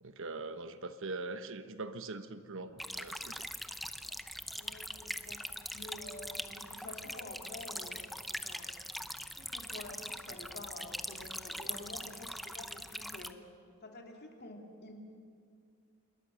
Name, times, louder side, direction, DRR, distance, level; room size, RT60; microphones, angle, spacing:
voice 1, 0.0-3.4, right 3 dB, 65° right, 10 dB, 1.1 m, -42 dB
sound 1, 2.8-13.3, equal, ahead, 0.7 m, -42 dB
voice 2, 4.5-5.4 5.7-8.1 8.4-8.7 9.2-13.4 13.8-14.9, left 2 dB, 50° left, 2 dB, 3.2 m, -49 dB
27.0 x 22.0 x 6.4 m, 2.4 s
head